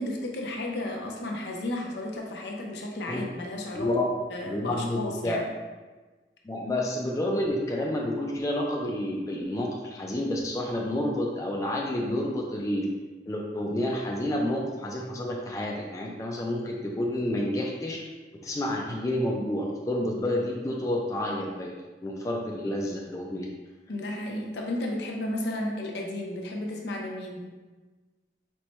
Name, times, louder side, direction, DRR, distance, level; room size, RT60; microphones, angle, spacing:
voice 1, 0.0-3.9 4.3-5.5 23.9-27.5, left 1 dB, 75° left, 0 dB, 0.7 m, -33 dB
voice 2, 3.7-4.1 4.4-5.4 6.4-12.8 13.3-18.0 18.4-21.7 22.0-23.5, left 1 dB, 20° left, -1 dB, 0.3 m, -29 dB
4.4 x 2.2 x 4.1 m, 1.3 s
head